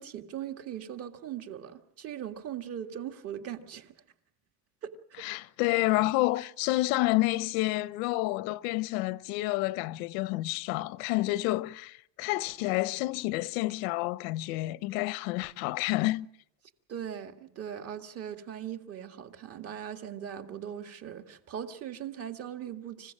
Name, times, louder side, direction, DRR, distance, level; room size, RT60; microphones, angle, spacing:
voice 1, 0.0-3.9 4.8-5.3 16.9-23.1, right 9 dB, 35° right, 1.9 m, -40 dB
voice 2, 5.2-16.3, left 19 dB, 90° left, 0.9 m, -29 dB
26.5 x 16.0 x 7.4 m
cardioid pair, 165°, 40 cm